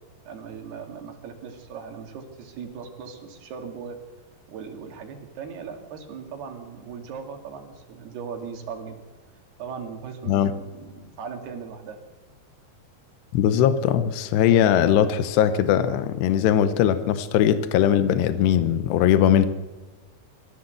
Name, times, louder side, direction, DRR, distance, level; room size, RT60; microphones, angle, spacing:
voice 1, 0.3-4.0 4.5-9.0 9.6-12.0, right 6 dB, 75° right, 5 dB, 4.2 m, -38 dB
voice 2, 13.3-19.5, left 10 dB, 90° left, 12 dB, 3.1 m, -20 dB
25.0 x 14.0 x 8.0 m, 1.2 s
omnidirectional pair, 4.7 m